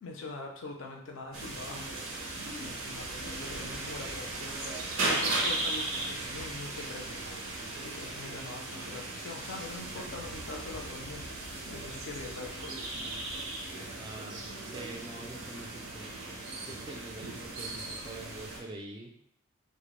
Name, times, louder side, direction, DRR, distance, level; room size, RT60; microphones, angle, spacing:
voice 1, 0.0-1.9 2.5-4.6 5.0-11.4 11.7-12.9, left 3 dB, 65° left, 1 dB, 0.5 m, -44 dB
sound 1, 1.3-18.6, right 2 dB, 75° right, 0.5 m, -37 dB
voice 2, 13.7-16.2 16.7-19.1, right 2 dB, 20° right, 1 dB, 0.3 m, -45 dB
2.1 x 2.0 x 2.9 m, 0.67 s
head